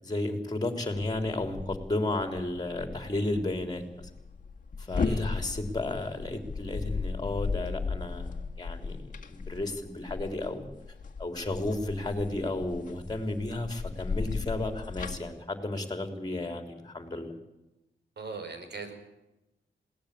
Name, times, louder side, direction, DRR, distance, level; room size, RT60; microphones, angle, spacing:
voice 1, 0.0-4.1 4.8-8.3 8.6-10.6 11.2-17.3, left 2 dB, 20° left, 6 dB, 3.8 m, -33 dB
sound 1, 1.1-15.2, left 4 dB, 45° left, 1.9 m, -36 dB
voice 2, 18.2-18.9, right 4 dB, 60° right, 6 dB, 5.2 m, -40 dB
21.0 x 18.0 x 8.5 m, 0.96 s
wide cardioid pair, 115°, 19 cm